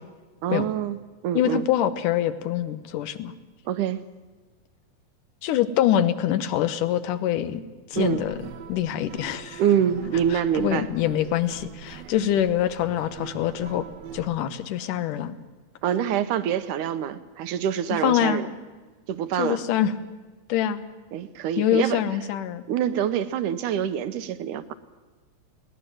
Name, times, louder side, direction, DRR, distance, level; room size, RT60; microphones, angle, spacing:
voice 1, 0.4-1.0 1.2-1.6 3.7-4.0 8.0-8.2 9.6-10.9 15.8-18.5 19.1-19.6 21.1-22.0 22.7-24.7, right 9 dB, 75° right, 12 dB, 2.1 m, -25 dB
voice 2, 1.3-3.3 5.4-7.6 7.9-8.4 8.7-9.6 10.3-13.9 14.1-15.4 17.9-18.4 19.4-19.9 20.5-20.8 21.6-22.6, left 10 dB, 75° left, 12 dB, 2.4 m, -25 dB
sound 1, 7.9-14.3, right 8 dB, 90° right, 3.0 m, -42 dB
21.5 x 18.5 x 7.7 m, 1.3 s
omnidirectional pair, 4.1 m